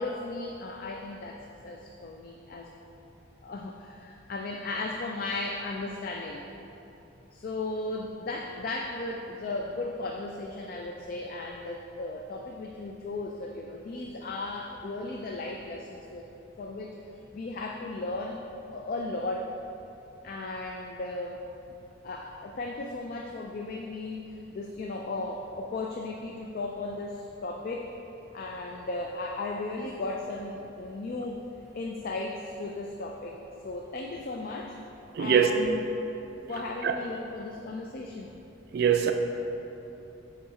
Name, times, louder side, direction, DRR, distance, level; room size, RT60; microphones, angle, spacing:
voice 1, 0.0-1.4 1.6-2.7 3.4-6.5 7.3-16.3 16.6-17.0 17.3-18.4 18.7-19.5 20.2-21.4 22.0-27.9 28.3-31.4 31.7-34.8 35.2-36.0 36.5-38.3, left 2 dB, 45° left, 1 dB, 0.3 m, -36 dB
voice 2, 35.1-35.6 36.8-37.0 38.7-39.1, right 7 dB, 55° right, 6 dB, 0.3 m, -23 dB
6.9 x 3.7 x 4.7 m, 3.0 s
head